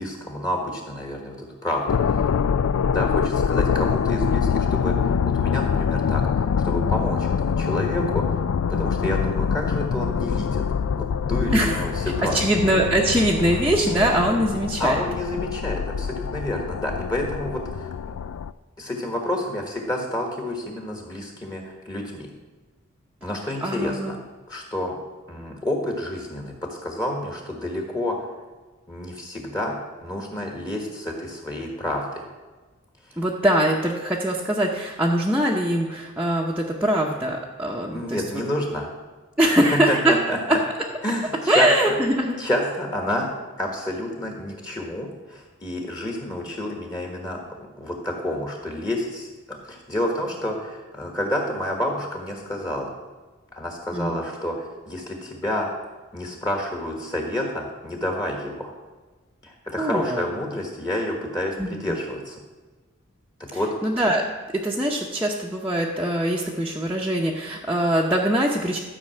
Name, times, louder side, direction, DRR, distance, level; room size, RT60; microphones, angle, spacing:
voice 1, 0.0-2.3 2.9-10.6 10.9-12.4 14.8-18.1 18.8-22.3 23.2-24.2 24.5-25.0 25.3-28.2 28.9-32.3 37.9-38.9 39.4-40.4 41.0-42.0 42.4-43.3 43.6-52.9 53.5-55.7 56.1-58.7 59.4-62.4 63.4-63.7, left 1 dB, 20° left, 1 dB, 1.4 m, -29 dB
sound 1, 1.9-18.5, left 6 dB, 75° left, 0.3 m, -25 dB
voice 2, 11.5-11.8 12.3-15.0 23.6-24.1 33.2-38.2 39.4-40.1 41.5-42.4 53.9-54.2 59.8-60.2 61.6-61.8 63.8-64.2 64.6-68.8, right 1 dB, 5° right, -5 dB, 0.8 m, -22 dB
13.0 x 5.4 x 7.7 m, 1.3 s
head